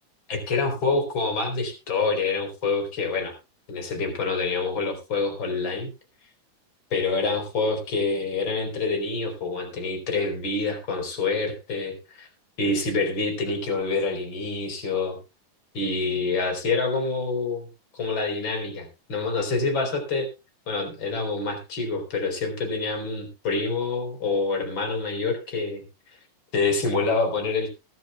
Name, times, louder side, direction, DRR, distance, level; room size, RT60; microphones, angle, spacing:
voice 1, 0.3-3.3 3.7-5.9 6.9-12.3 12.6-15.2 15.7-17.7 17.9-20.3 20.7-25.8 26.5-27.7, left 3 dB, 35° left, 4 dB, 4.5 m, -26 dB
22.0 x 10.5 x 2.3 m, 0.29 s
omnidirectional pair, 3.8 m